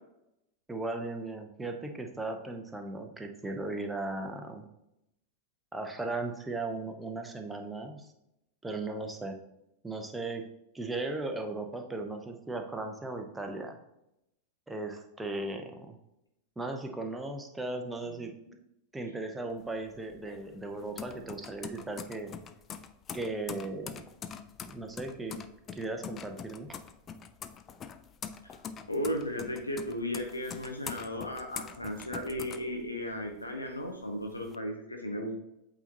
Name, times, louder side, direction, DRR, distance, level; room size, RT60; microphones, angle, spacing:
voice 1, 0.7-4.7 5.7-8.1 8.6-9.4 9.8-10.5 10.7-13.8 14.7-16.0 16.6-18.6 18.9-22.3 23.1-24.1 24.7-25.4 25.7-26.8, right 2 dB, 10° right, 4 dB, 0.8 m, -37 dB
sound 1, 19.5-33.3 33.7-34.6, left 7 dB, 25° left, 0.4 m, -44 dB
voice 2, 28.9-35.3, equal, 85° left, 2 dB, 0.8 m, -35 dB
8.2 x 4.0 x 2.9 m, 0.85 s
figure-of-eight pair, 90°, 0 cm